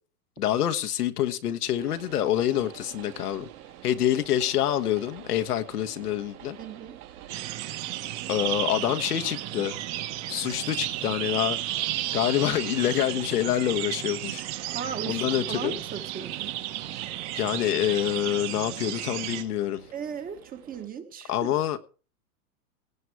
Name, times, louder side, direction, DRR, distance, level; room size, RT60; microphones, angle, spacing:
voice 1, 0.4-3.5 3.8-6.6 8.3-9.8 10.3-11.6 12.1-14.4 15.1-15.8 17.3-19.8 21.3-21.8, left 11 dB, 85° left, 1.4 m, -26 dB
Train, 1.7-20.9, right 11 dB, 75° right, 3.3 m, -48 dB
voice 2, 6.6-7.0 14.7-16.6 19.9-21.5, right 7 dB, 20° right, 1.2 m, -37 dB
sound 1, 7.3-19.4, right 14 dB, 45° right, 1.5 m, -33 dB
18.0 x 8.2 x 4.7 m
hypercardioid pair, 140°, 45 cm